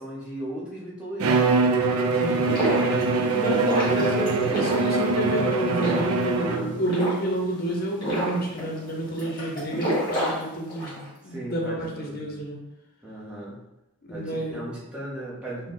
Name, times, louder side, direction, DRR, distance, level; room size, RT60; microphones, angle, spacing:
voice 1, 0.0-1.8 6.3-6.7 11.2-12.4 13.0-13.6 14.1-15.7, right 1 dB, 5° right, -7 dB, 0.9 m, -37 dB
Bowed string instrument, 1.2-6.8, right 3 dB, 85° right, 0.4 m, -23 dB
sound 1, 2.2-11.0, right 1 dB, 20° left, 1.5 m, -30 dB
voice 2, 3.3-12.6 14.0-14.6 15.6-15.7, right 1 dB, 45° left, 0 dB, 0.8 m, -29 dB
4.2 x 2.1 x 3.8 m, 0.91 s
head